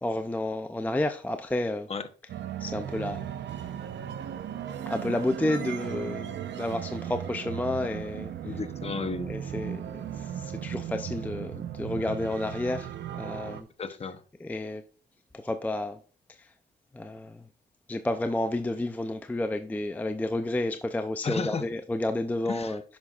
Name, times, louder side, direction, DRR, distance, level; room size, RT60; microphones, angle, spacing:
voice 1, 0.0-1.9 2.6-3.3 4.9-8.6 9.3-13.7 14.4-14.8 15.3-16.0 16.3-16.5 16.9-17.4 17.9-23.0, left 1 dB, 10° left, 0.4 m, -31 dB
sound 1, 2.3-13.6, right 10 dB, 65° right, 0.8 m, -36 dB
voice 2, 8.4-9.3 13.8-14.2 21.2-21.7 22.5-22.8, left 5 dB, 30° left, 0.8 m, -33 dB
10.0 x 5.8 x 2.4 m
cardioid pair, 90°, 20 cm